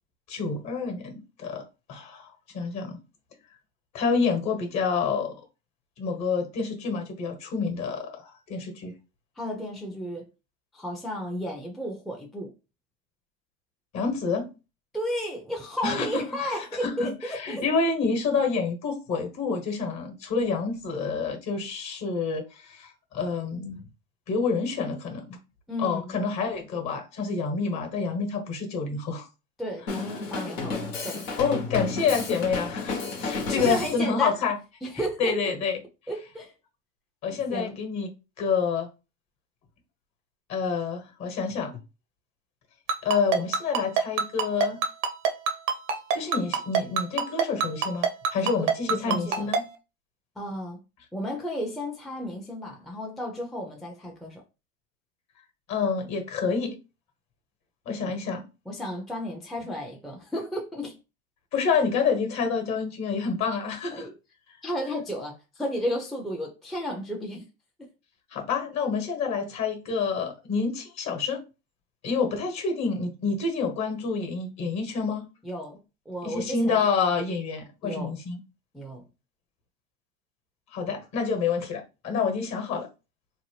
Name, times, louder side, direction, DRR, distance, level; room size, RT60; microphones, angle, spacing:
voice 1, 0.3-3.0 3.9-5.3 6.0-8.9 13.9-14.5 15.8-16.2 16.8-23.8 24.3-25.4 25.8-29.3 31.4-34.6 35.2-35.8 37.2-38.1 38.4-38.9 40.5-41.8 43.0-44.8 46.1-49.7 55.7-56.7 57.8-58.4 61.5-64.1 68.3-71.4 72.0-75.3 76.2-78.4 80.7-82.9, left 5 dB, 45° left, 1.2 m, -28 dB
voice 2, 9.4-10.3 10.7-12.5 14.9-17.6 25.7-26.2 29.6-31.3 33.2-34.4 34.8-35.6 36.1-36.5 37.3-37.8 48.4-49.5 50.4-50.8 51.1-54.4 58.0-58.1 58.7-61.0 63.9-64.1 64.6-67.5 67.8-67.9 75.4-76.8 77.8-78.2 78.7-79.1, equal, ahead, 0.5 m, -33 dB
Drum kit, 29.9-34.0, left 4 dB, 80° left, 1.1 m, -32 dB
Ringtone, 42.9-49.6, right 6 dB, 70° right, 0.8 m, -23 dB
2.7 x 2.1 x 3.2 m
hypercardioid pair, 90°, 39 cm